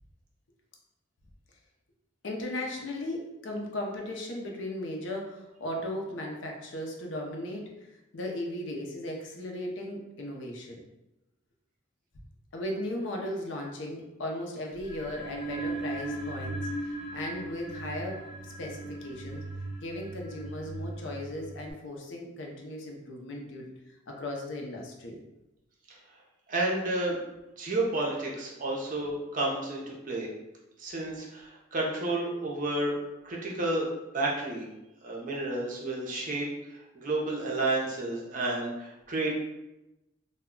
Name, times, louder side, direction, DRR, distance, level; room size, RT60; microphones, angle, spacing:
voice 1, 2.2-10.8 12.5-18.2 18.4-19.4 19.8-23.7 24.1-25.2, left 1 dB, 65° left, 1 dB, 0.5 m, -37 dB
sound 1, 14.8-21.7, right 2 dB, 45° left, 1.0 m, -38 dB
voice 2, 26.5-27.2 27.6-30.3 30.8-33.0 33.2-33.9 34.1-34.7 35.0-36.5 36.9-39.3, right 2 dB, 40° right, -3 dB, 0.6 m, -31 dB
2.2 x 2.1 x 3.6 m, 0.96 s
head